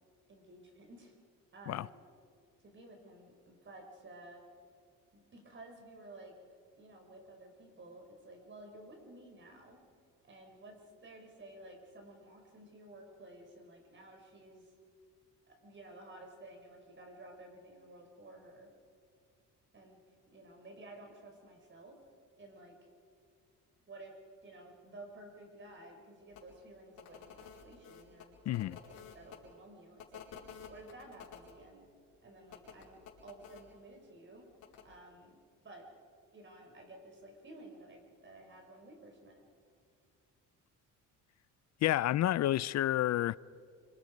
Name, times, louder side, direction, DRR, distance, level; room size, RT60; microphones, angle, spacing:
voice 1, 0.3-1.1 1.5-2.0 2.6-4.4 5.1-6.3 6.8-9.8 10.2-14.7 15.5-18.7 19.7-20.0 20.3-22.0 22.4-22.8 23.9-30.2 30.7-31.9 32.2-34.5 34.8-35.4 35.6-35.9 36.3-39.4, right 2 dB, 35° right, 4.9 m, -53 dB
sound 1, 26.3-26.4 26.9-29.4 30.0-31.5 32.5-33.6 34.6-34.8, left 7 dB, 75° left, 4.8 m, -51 dB
voice 2, 28.5-28.8 41.8-43.4, left 14 dB, 55° left, 0.5 m, -30 dB
27.5 x 25.5 x 5.3 m
cardioid pair, 120°, 32 cm